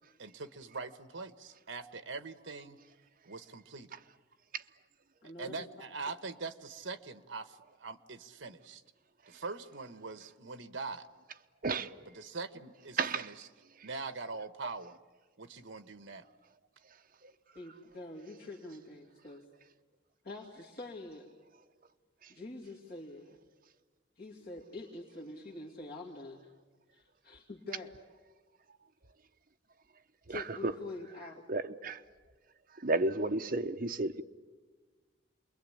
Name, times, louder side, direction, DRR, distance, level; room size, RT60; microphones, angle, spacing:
voice 1, 0.2-2.8 3.2-4.0 5.4-8.8 9.3-11.1 12.1-13.5 13.8-15.0 15.4-16.3, right 4 dB, 70° right, 1.2 m, -43 dB
voice 2, 5.2-5.5 17.5-19.4 20.2-21.3 22.3-23.4 24.2-26.4 26.9-27.9 30.3-31.4, left 2 dB, 50° left, 2.7 m, -45 dB
voice 3, 30.3-30.7 31.5-32.0 32.8-34.2, right 3 dB, 45° right, 0.9 m, -32 dB
28.5 x 22.0 x 8.7 m
head